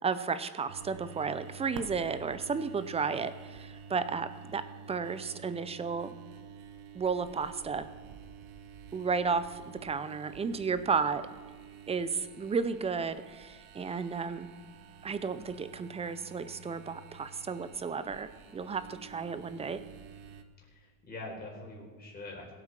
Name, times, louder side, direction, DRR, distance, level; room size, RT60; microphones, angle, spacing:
voice 1, 0.0-6.1 6.9-7.9 8.9-11.3 11.9-14.5 15.0-19.8, right 5 dB, 15° right, 13 dB, 0.5 m, -33 dB
sound 1, 0.7-20.4, right 7 dB, 75° right, 1.1 m, -50 dB
voice 2, 20.7-22.5, left 2 dB, 25° left, -2 dB, 4.2 m, -44 dB
21.5 x 8.0 x 4.4 m, 1.5 s
cardioid pair, 150°, 37 cm